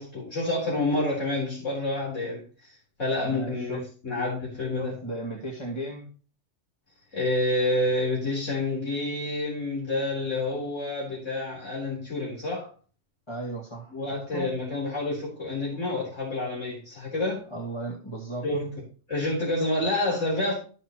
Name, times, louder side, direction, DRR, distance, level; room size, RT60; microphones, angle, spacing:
voice 1, 0.0-2.4 3.0-4.9 7.1-12.7 13.9-17.5 18.4-18.7 19.1-20.6, left 2 dB, 65° left, -5 dB, 4.3 m, -28 dB
voice 2, 3.2-3.8 4.8-6.1 13.3-14.5 17.5-18.5, right 2 dB, 20° left, -3 dB, 2.1 m, -35 dB
14.0 x 6.1 x 3.0 m, 0.38 s
omnidirectional pair, 1.4 m